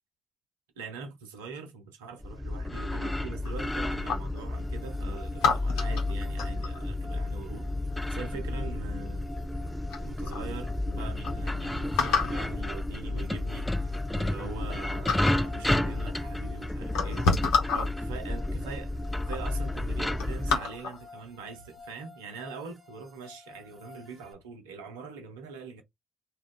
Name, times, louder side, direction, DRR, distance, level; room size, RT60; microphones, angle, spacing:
voice 1, 0.8-7.7 8.1-9.3 10.0-17.3 17.7-25.8, right 4 dB, 80° right, 0.7 m, -43 dB
sound 1, 2.2-20.6, left 1 dB, 10° left, 0.5 m, -31 dB
sound 2, 3.4-4.4 5.4-6.8 8.5-8.9 9.5-9.6 9.9-10.5 10.9-11.0 11.2-11.3 12.0-12.5 13.4-13.5 13.9-14.8 15.0-15.5 16.3-16.4 16.8-17.9 18.7-18.8 19.2-19.4 19.8-21.0 21.5-21.8, left 4 dB, 70° left, 0.8 m, -29 dB
sound 3, 4.5-24.3, left 3 dB, 30° right, 1.0 m, -51 dB
2.4 x 2.4 x 3.4 m
hypercardioid pair, 45°, 0 cm